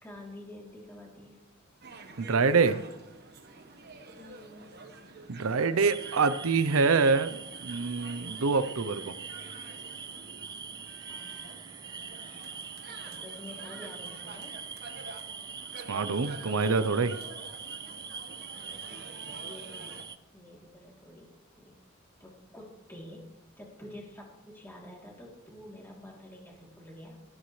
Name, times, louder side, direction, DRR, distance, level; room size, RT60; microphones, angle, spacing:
voice 1, 0.0-1.4 4.1-4.8 11.1-11.7 12.2-14.6 18.9-21.3 21.6-21.7 22.2-23.3 23.6-27.2, left 1 dB, 10° left, -3 dB, 3.1 m, -49 dB
sound 1, 1.8-20.0, right 3 dB, 50° right, 1.3 m, -49 dB
voice 2, 2.2-2.8 5.3-9.1 15.9-17.2, right 4 dB, 75° right, 13 dB, 0.7 m, -26 dB
sound 2, 5.8-20.2, right 6 dB, 20° right, 0.4 m, -43 dB
14.0 x 12.5 x 3.2 m, 0.94 s
head